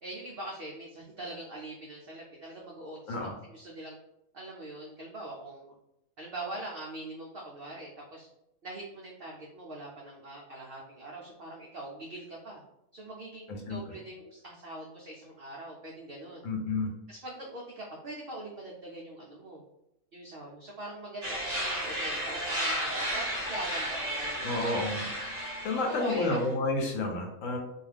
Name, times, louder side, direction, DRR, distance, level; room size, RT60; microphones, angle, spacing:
voice 1, 0.0-3.9 4.3-5.7 6.2-8.3 8.6-12.6 12.9-16.5 17.1-19.6 20.1-24.7 25.7-26.4, right 2 dB, 85° right, -2 dB, 0.5 m, -43 dB
voice 2, 16.4-16.9 24.4-25.1 25.6-27.6, left 2 dB, 65° left, 1 dB, 0.9 m, -30 dB
sound 1, 21.2-26.5, equal, 35° right, 0.7 m, -33 dB
2.4 x 2.3 x 3.2 m, 0.86 s
omnidirectional pair, 1.6 m